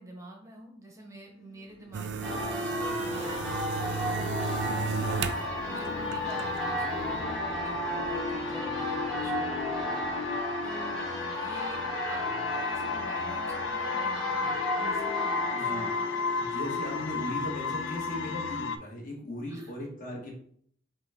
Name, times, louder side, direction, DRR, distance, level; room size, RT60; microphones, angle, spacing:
voice 1, 0.0-5.3 5.6-10.1 10.6-16.1 19.5-19.7, right 1 dB, 15° right, 1 dB, 0.7 m, -48 dB
sound 1, 1.7-18.8, left 5 dB, 80° left, 0.4 m, -34 dB
sound 2, 1.9-5.4 5.8-6.6, right 6 dB, 65° right, 0.3 m, -34 dB
Church bell, 2.2-18.0, equal, ahead, 1.0 m, -35 dB
voice 2, 15.5-15.9 16.3-20.3, left 1 dB, 50° left, -1 dB, 1.1 m, -38 dB
5.0 x 2.3 x 3.4 m, 0.63 s
head